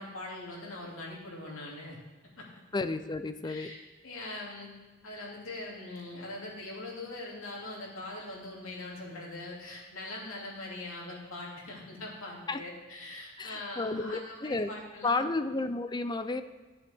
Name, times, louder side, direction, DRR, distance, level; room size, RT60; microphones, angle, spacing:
voice 1, 0.0-2.0 2.4-2.5 3.4-3.8 4.0-4.7 5.0-15.3, left 2 dB, 85° left, -3 dB, 2.7 m, -42 dB
voice 2, 2.7-3.7 12.5-12.6 13.4-14.7 15.0-16.4, left 3 dB, 20° left, 10 dB, 0.5 m, -32 dB
13.5 x 7.9 x 3.5 m, 1.2 s
head